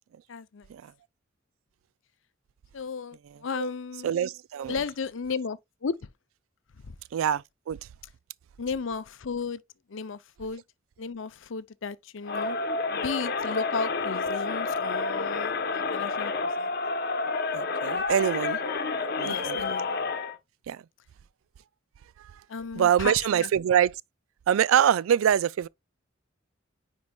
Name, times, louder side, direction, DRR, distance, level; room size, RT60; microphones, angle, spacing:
voice 1, 0.3-0.7 2.7-4.1 4.7-6.1 6.8-7.0 8.6-9.6 9.9-10.6 11.0-12.6 12.9-16.7 19.2-20.0 22.5-23.5, left 5 dB, 70° left, 0.6 m, -34 dB
voice 2, 4.0-4.8 7.1-7.8 17.5-18.6 19.2-19.6 20.7-20.8 22.7-23.9 24.5-25.7, right 9 dB, 85° right, 0.3 m, -24 dB
Crowd, 12.2-20.4, left 3 dB, 50° left, 0.9 m, -29 dB
9.5 x 4.5 x 2.3 m
head